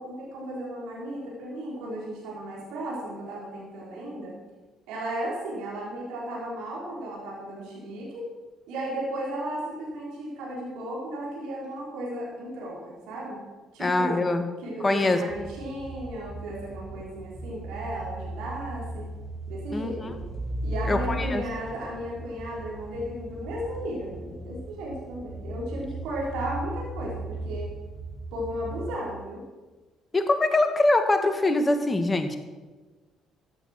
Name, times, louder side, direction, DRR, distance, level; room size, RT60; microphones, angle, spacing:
voice 1, 0.0-4.3 4.9-8.2 8.7-13.4 13.7-14.2 14.6-19.1 19.5-20.2 20.6-27.7 28.3-29.4, right 1 dB, 70° right, -4 dB, 4.7 m, -35 dB
voice 2, 13.8-14.5 14.8-15.2 19.7-20.1 20.9-21.4 30.1-32.4, left 2 dB, 25° left, 7 dB, 2.0 m, -23 dB
sound 1, 15.3-29.0, right 1 dB, 25° right, 5.2 m, -37 dB
14.5 x 8.7 x 6.1 m, 1.3 s
hypercardioid pair, 50°, 0 cm